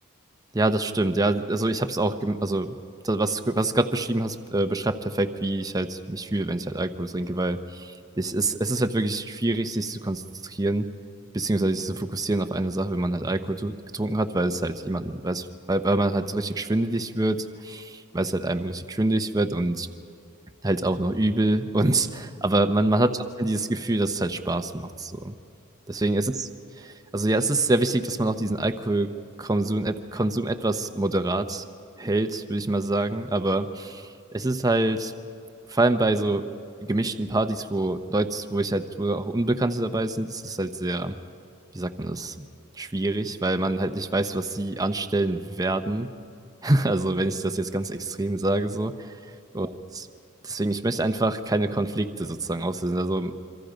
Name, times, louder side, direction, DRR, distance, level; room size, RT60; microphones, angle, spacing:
voice 1, 0.5-2.7 3.0-10.9 11.3-19.9 20.6-23.1 23.4-25.4 25.9-26.5 27.1-29.1 29.4-31.6 32.0-35.1 35.7-36.4 36.8-41.1 41.7-42.3 42.8-46.1 46.6-49.1 49.5-49.7 50.4-53.3, right 2 dB, 15° right, 7 dB, 0.8 m, -25 dB
26.5 x 24.5 x 5.2 m, 2.5 s
head